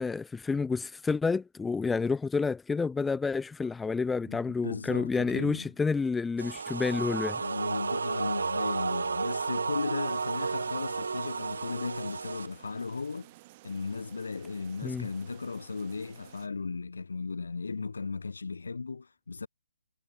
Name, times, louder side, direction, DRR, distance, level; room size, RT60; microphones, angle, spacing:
voice 1, 0.0-7.4 14.8-15.1, left 4 dB, 5° left, 0.4 m, -29 dB
voice 2, 4.2-5.7 7.4-13.3 13.6-19.5, left 4 dB, 80° left, 3.3 m, -36 dB
sound 1, 6.4-12.5, right 5 dB, 75° right, 3.1 m, -32 dB
sound 2, 10.0-16.5, right 21 dB, 25° right, 3.0 m, -55 dB
hypercardioid pair, 160°, 0 cm